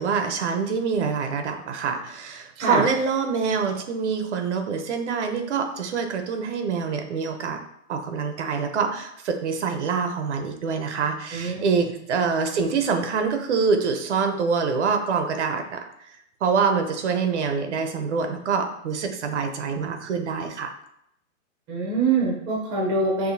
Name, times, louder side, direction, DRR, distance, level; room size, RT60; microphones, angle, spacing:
voice 1, 0.0-7.6 7.9-20.7, right 5 dB, 60° right, 6 dB, 0.7 m, -25 dB
voice 2, 21.7-23.3, right 3 dB, 10° right, -4 dB, 0.6 m, -24 dB
4.9 x 2.9 x 2.7 m, 0.77 s
hypercardioid pair, 160°, 39 cm